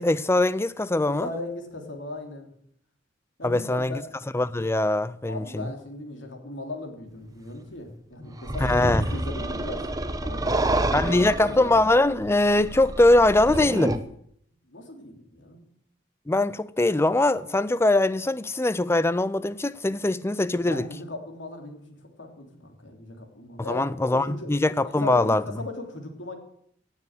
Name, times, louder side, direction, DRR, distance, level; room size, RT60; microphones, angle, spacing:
voice 1, 0.0-1.3 3.4-4.0 4.3-5.7 8.6-9.0 10.9-14.0 16.3-20.8 23.7-25.4, left 2 dB, 15° left, 0.5 m, -22 dB
voice 2, 1.1-2.5 3.4-4.1 5.3-8.8 9.1-9.8 10.2-11.7 14.7-15.6 20.6-23.9 24.1-24.5 25.0-26.4, left 2 dB, 80° left, 3.1 m, -38 dB
Monster-Growls, 8.4-14.0, right 1 dB, 20° right, 0.9 m, -28 dB
17.0 x 7.3 x 8.0 m
head